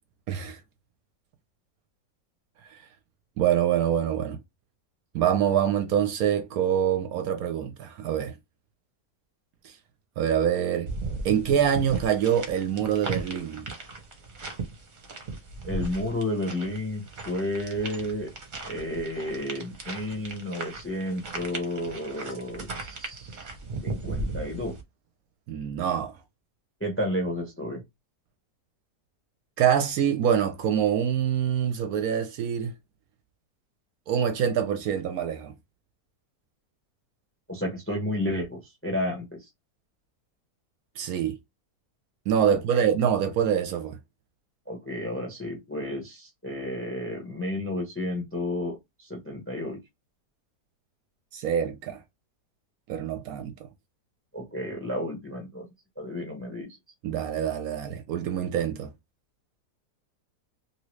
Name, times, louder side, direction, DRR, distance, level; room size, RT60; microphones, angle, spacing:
voice 1, 0.3-0.6 2.7-2.8 3.4-4.4 5.1-8.4 9.6-9.8 10.2-10.9 11.2-13.7 25.5-26.2 29.6-32.7 34.1-35.6 41.0-41.4 42.3-44.0 51.3-52.0 52.9-53.7 57.0-58.9, right 9 dB, 70° right, 0.9 m, -25 dB
sound 1, 10.9-24.8, right 3 dB, 40° right, 0.8 m, -37 dB
voice 2, 15.6-18.3 18.7-23.4 23.8-24.8 26.8-27.8 37.5-39.3 42.5-42.8 44.7-49.8 54.3-55.7 56.0-56.7, left 1 dB, 15° left, 0.6 m, -32 dB
2.8 x 2.8 x 3.1 m
omnidirectional pair, 1.8 m